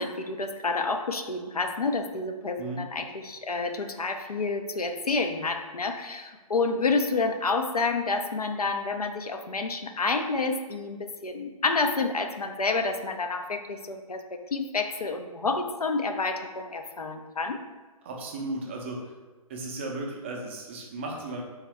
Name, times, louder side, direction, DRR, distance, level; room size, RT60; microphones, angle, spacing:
voice 1, 0.0-17.6, left 3 dB, 85° left, 6 dB, 0.4 m, -29 dB
voice 2, 18.0-19.1 19.5-21.4, right 2 dB, 20° right, 0 dB, 0.3 m, -35 dB
3.5 x 2.6 x 3.2 m, 1.3 s
figure-of-eight pair, 130°, 19 cm